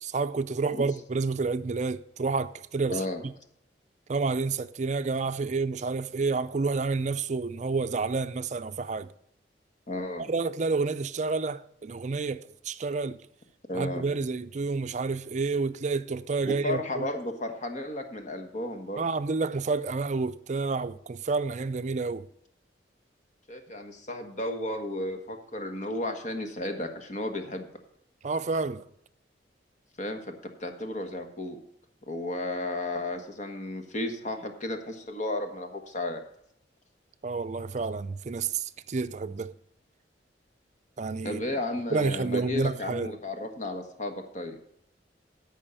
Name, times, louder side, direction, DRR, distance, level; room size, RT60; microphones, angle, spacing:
voice 1, 0.0-3.3 4.1-9.1 10.2-13.2 13.7-17.1 19.0-22.3 28.2-28.9 37.2-39.5 41.0-41.4 41.9-43.1, right 4 dB, 40° right, 0.5 m, -29 dB
voice 2, 2.9-3.2 9.9-10.3 13.7-14.1 16.5-19.0 23.5-27.7 30.0-30.3 30.6-31.6 32.1-36.2 41.2-44.6, left 1 dB, 45° left, 1.4 m, -33 dB
14.0 x 5.5 x 5.6 m
head